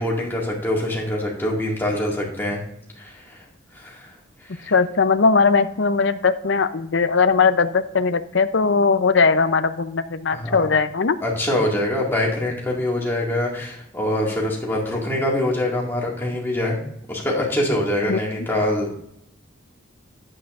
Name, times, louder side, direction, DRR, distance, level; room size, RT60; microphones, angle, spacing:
voice 1, 0.0-2.6 3.0-3.4 3.7-4.1 4.4-4.7 10.3-10.7 11.2-16.8 17.1-19.0, left 1 dB, 10° left, -3 dB, 2.0 m, -24 dB
voice 2, 4.7-11.2 18.1-18.2, left 4 dB, 65° left, 11 dB, 0.6 m, -19 dB
11.5 x 8.6 x 2.5 m, 0.72 s
head